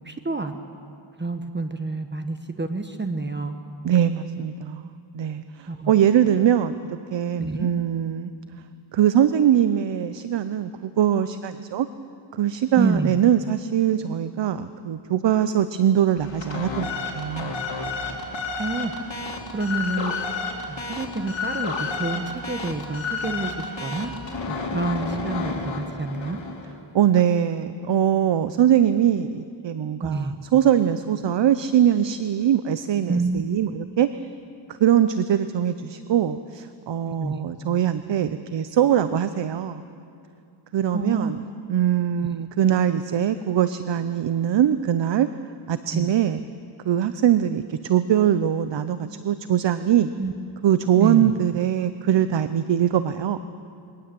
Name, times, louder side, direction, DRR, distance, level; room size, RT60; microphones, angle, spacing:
voice 1, 0.0-0.5 1.2-3.5 5.7-5.9 7.4-7.7 12.8-13.2 18.6-18.9 19.5-20.1 20.7-24.2 24.5-26.4 30.0-30.4 33.1-33.4 37.2-37.3 40.9-41.3 45.9-46.1 50.2-50.3 51.0-51.3, right 3 dB, 20° right, 7 dB, 1.0 m, -28 dB
voice 2, 3.8-8.3 8.9-11.9 12.3-17.5 26.9-34.1 34.8-39.8 40.7-41.4 41.7-45.3 45.7-46.4 46.8-50.1 50.6-53.4, right 10 dB, 60° right, 12 dB, 0.7 m, -22 dB
sound 1, 16.2-26.7, left 4 dB, 60° left, 2.9 m, -31 dB
22.0 x 18.5 x 7.7 m, 2.5 s
wide cardioid pair, 110°, 50 cm